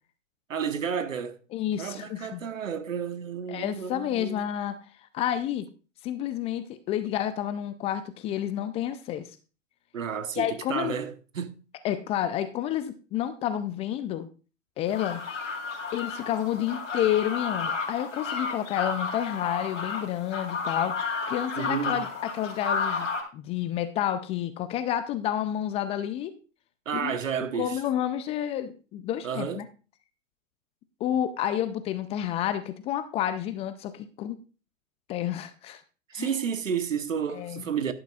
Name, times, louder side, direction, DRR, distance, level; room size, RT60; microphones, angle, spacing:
voice 1, 0.5-1.4 1.8-4.4 9.9-11.6 21.6-22.0 26.8-27.8 29.2-29.7 36.1-37.9, right 7 dB, 85° right, 1.2 m, -31 dB
voice 2, 1.5-2.4 3.5-4.8 5.1-5.7 6.0-9.3 10.4-11.0 11.8-14.3 14.8-15.2 15.9-21.0 21.3-22.1 22.3-23.1 23.3-26.3 26.9-27.2 27.6-29.6 31.0-34.4 35.1-35.8 36.1-36.3 37.3-37.6, left 11 dB, 15° left, 0.4 m, -30 dB
sound 1, 14.9-23.2, left 4 dB, 75° left, 3.6 m, -32 dB
11.5 x 11.0 x 2.4 m
hypercardioid pair, 115°, 38 cm